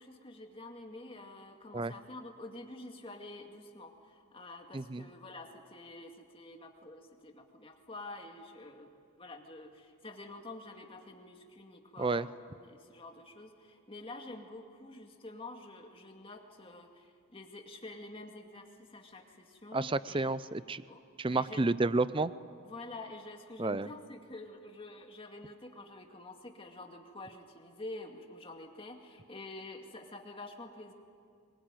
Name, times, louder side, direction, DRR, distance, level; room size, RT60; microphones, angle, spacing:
voice 1, 0.0-8.9 9.2-20.3 20.9-21.0 21.3-21.6 22.6-30.9, left 2 dB, 25° left, 3 dB, 2.1 m, -48 dB
voice 2, 19.7-20.8 21.2-22.3 23.6-23.9, right 3 dB, 25° right, 15 dB, 0.5 m, -30 dB
24.0 x 22.0 x 9.1 m, 2.3 s
head